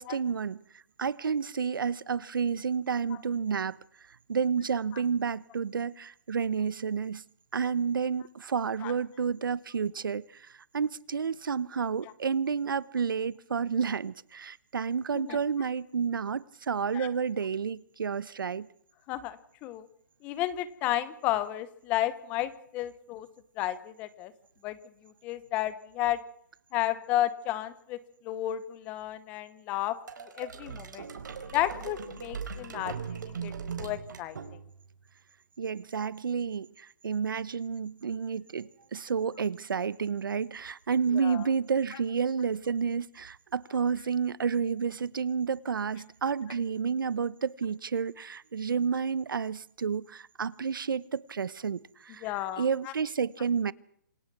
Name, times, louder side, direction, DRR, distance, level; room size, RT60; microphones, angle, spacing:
voice 1, 0.0-3.8 4.3-7.2 7.5-18.7 35.6-52.3 52.6-53.7, right 6 dB, 85° right, 20 dB, 1.1 m, -30 dB
voice 2, 19.1-19.9 20.2-23.3 23.6-24.3 24.6-24.8 25.0-26.2 26.7-28.0 28.2-30.0 30.4-31.1 31.5-33.5 33.8-34.4 41.1-41.4 52.2-52.9, left 14 dB, 15° left, 16 dB, 0.8 m, -32 dB
sound 1, 30.1-34.9, right 6 dB, 65° right, 4.6 m, -39 dB
27.0 x 17.5 x 6.1 m, 0.66 s
hypercardioid pair, 175°, 11 cm